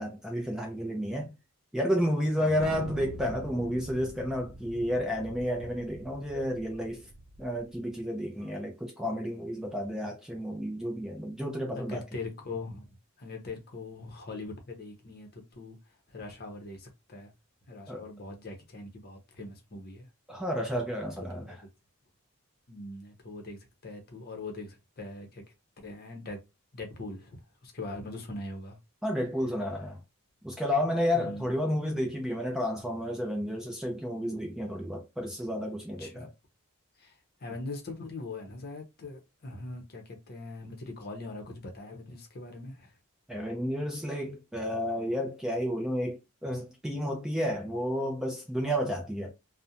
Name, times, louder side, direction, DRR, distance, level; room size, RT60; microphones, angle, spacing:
voice 1, 0.0-1.3 1.7-7.1 7.4-12.0 17.9-18.0 20.3-21.6 29.0-30.0 30.4-36.3 43.3-49.3, equal, 5° right, 0.4 m, -31 dB
Thunder, 2.6-7.7, right 2 dB, 90° right, 0.5 m, -44 dB
voice 2, 11.8-15.8 16.1-17.3 17.7-20.1 21.3-21.6 22.7-25.5 25.8-26.4 26.7-28.8 31.1-31.5 36.0-36.3 37.0-42.9, left 2 dB, 45° left, 0.7 m, -41 dB
2.4 x 2.1 x 2.8 m
head